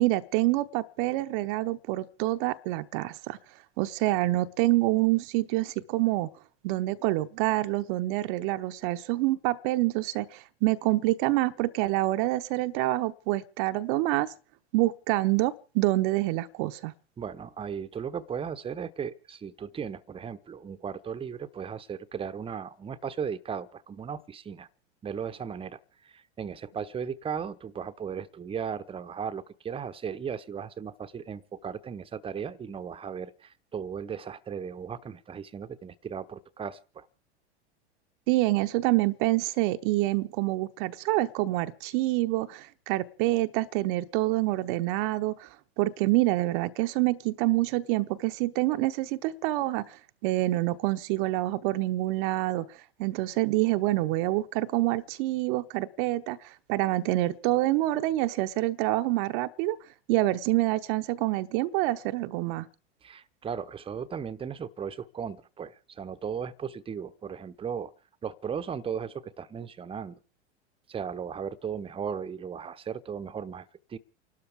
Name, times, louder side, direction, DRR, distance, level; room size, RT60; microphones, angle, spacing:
voice 1, 0.0-3.4 3.8-6.3 6.6-14.3 14.7-16.9 38.3-45.5 45.8-59.8 60.1-62.7, right 18 dB, 45° right, 0.8 m, -27 dB
voice 2, 17.2-24.7 25.0-37.1 63.0-67.9 68.2-70.2 70.9-74.0, right 7 dB, 15° right, 0.8 m, -36 dB
29.0 x 12.5 x 3.6 m
figure-of-eight pair, 90°, 34 cm